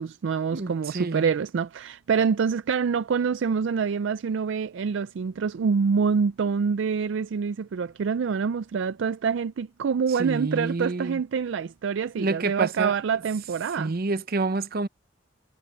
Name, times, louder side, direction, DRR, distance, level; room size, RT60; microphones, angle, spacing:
voice 1, 0.0-13.9, right 6 dB, 70° right, 0.4 m, -26 dB
voice 2, 0.5-1.3 10.2-11.2 12.1-12.9 13.7-14.9, right 3 dB, 55° right, 0.8 m, -28 dB
head